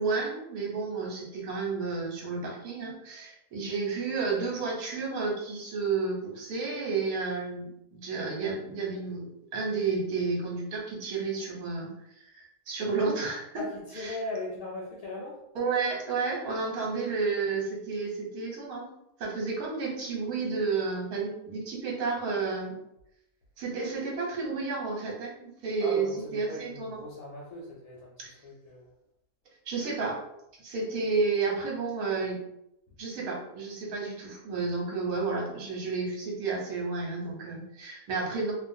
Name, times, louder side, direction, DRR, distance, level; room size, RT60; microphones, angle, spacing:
voice 1, 0.0-9.3 9.5-13.6 13.9-14.2 15.5-18.9 19.2-22.8 23.6-26.1 26.3-27.0 28.2-28.3 29.7-30.2 30.6-32.4 33.0-38.5, right 4 dB, 75° right, -2 dB, 1.3 m, -31 dB
voice 2, 13.6-15.4 25.8-28.9 30.0-30.1, left 2 dB, 75° left, -4 dB, 1.0 m, -39 dB
2.5 x 2.3 x 2.6 m, 0.83 s
omnidirectional pair, 1.6 m